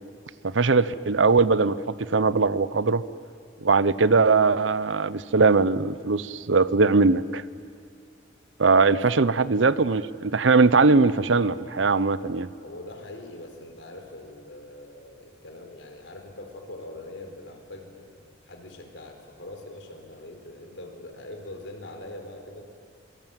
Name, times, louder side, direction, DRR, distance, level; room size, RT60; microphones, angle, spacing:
voice 1, 0.4-3.0 3.6-7.4 8.6-12.5, right 4 dB, 85° right, 17 dB, 0.8 m, -20 dB
voice 2, 8.9-9.8 12.6-18.1 18.4-22.6, left 1 dB, 75° left, 4 dB, 4.4 m, -42 dB
27.0 x 23.0 x 9.1 m, 2.3 s
head